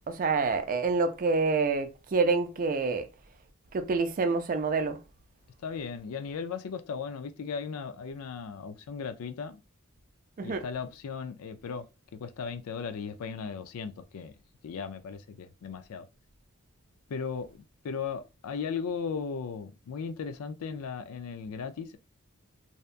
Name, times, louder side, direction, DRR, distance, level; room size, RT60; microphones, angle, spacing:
voice 1, 0.1-3.1 3.7-5.0 10.4-10.6, right 4 dB, 40° right, 0.4 m, -27 dB
voice 2, 5.6-9.6 10.4-11.9 12.1-14.3 14.6-16.1 17.1-22.0, left 6 dB, 85° left, 0.4 m, -37 dB
2.7 x 2.2 x 2.4 m
head